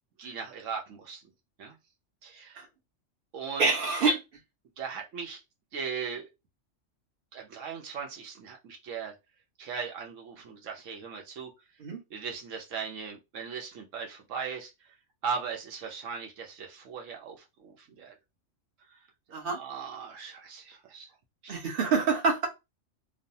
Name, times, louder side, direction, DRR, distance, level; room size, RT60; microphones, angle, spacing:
voice 1, 0.2-1.2 1.6-1.8 2.2-2.6 3.3-3.7 4.8-5.4 5.7-6.3 7.3-9.1 9.6-11.5 12.1-14.7 15.2-18.1 19.3-21.1 21.4-21.7, right 6 dB, 75° right, 1.1 m, -38 dB
voice 2, 3.6-4.2 11.8-12.0 19.3-19.6 21.5-22.5, right 4 dB, 50° right, 1.0 m, -26 dB
3.1 x 2.0 x 2.6 m
omnidirectional pair, 1.3 m